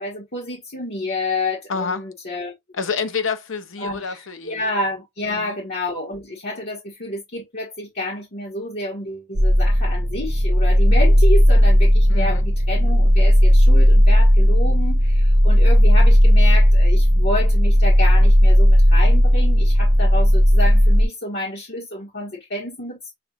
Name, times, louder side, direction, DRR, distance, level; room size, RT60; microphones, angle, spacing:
voice 1, 0.0-2.5 3.8-23.1, left 2 dB, 55° left, 1.6 m, -29 dB
voice 2, 1.7-2.1 2.7-4.6 5.3-5.6 12.1-12.4, left 5 dB, 75° left, 0.8 m, -28 dB
sound 1, 9.4-21.1, equal, 60° right, 0.6 m, -14 dB
6.5 x 2.5 x 2.6 m
head